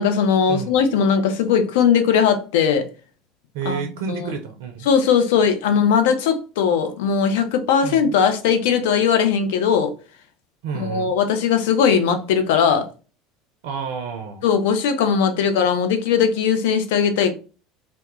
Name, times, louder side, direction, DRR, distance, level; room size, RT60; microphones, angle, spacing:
voice 1, 0.0-2.9 3.7-4.3 4.9-9.9 10.7-12.9 14.4-17.3, left 7 dB, 70° left, 0.4 m, -19 dB
voice 2, 3.5-4.9 7.8-8.1 10.6-11.1 13.6-14.4, right 6 dB, 70° right, 0.4 m, -30 dB
2.1 x 2.1 x 2.9 m
hypercardioid pair, 75°, 0 cm